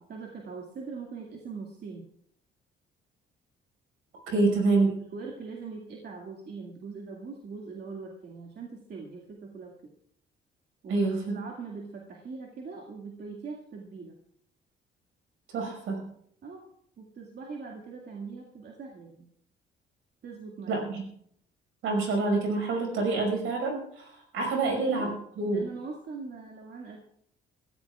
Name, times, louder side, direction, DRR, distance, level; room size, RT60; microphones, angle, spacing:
voice 1, 0.1-2.0 4.3-4.5 4.9-9.7 10.8-14.1 16.4-16.6 17.0-19.3 20.2-20.8 24.5-25.1 25.5-27.0, right 4 dB, 55° right, -1 dB, 2.2 m, -41 dB
voice 2, 4.3-4.9 10.9-11.3 15.5-16.1 20.7-21.0 21.8-25.1 25.4-25.6, right 3 dB, 90° right, 2 dB, 5.4 m, -27 dB
22.0 x 15.0 x 2.4 m, 0.68 s
cardioid pair, 90°, 20 cm